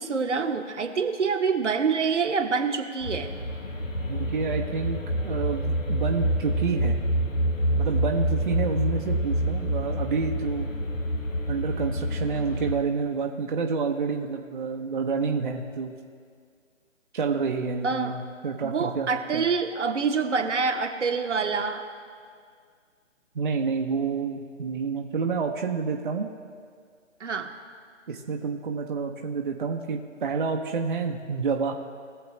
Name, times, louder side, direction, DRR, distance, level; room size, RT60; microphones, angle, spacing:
voice 1, 0.0-3.3 17.8-18.1 18.6-21.8 27.2-27.5, right 5 dB, 65° right, 5 dB, 1.2 m, -26 dB
sound 1, 3.0-12.7, equal, 90° left, 1.2 m, -27 dB
voice 2, 4.0-7.0 7.8-10.7 11.5-15.9 17.1-19.4 23.3-26.3 28.1-31.7, right 5 dB, 40° right, 2 dB, 0.8 m, -29 dB
20.0 x 7.0 x 3.1 m, 2.1 s
figure-of-eight pair, 150°, 38 cm